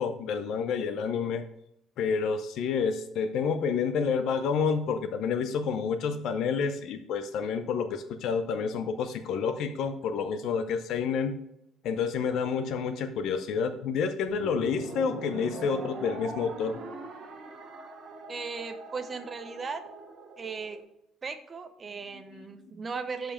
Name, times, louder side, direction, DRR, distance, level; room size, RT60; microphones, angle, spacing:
voice 1, 0.0-1.4 2.0-11.4 11.8-16.8 22.1-22.2, left 6 dB, 55° left, 9 dB, 0.6 m, -29 dB
sound 1, 14.3-20.8, right 3 dB, 40° right, 1.0 m, -42 dB
voice 2, 18.3-19.8 20.4-20.8 21.2-23.3, right 4 dB, 20° right, 8 dB, 0.6 m, -37 dB
7.3 x 5.2 x 5.0 m, 0.80 s
cardioid pair, 180°, 0 cm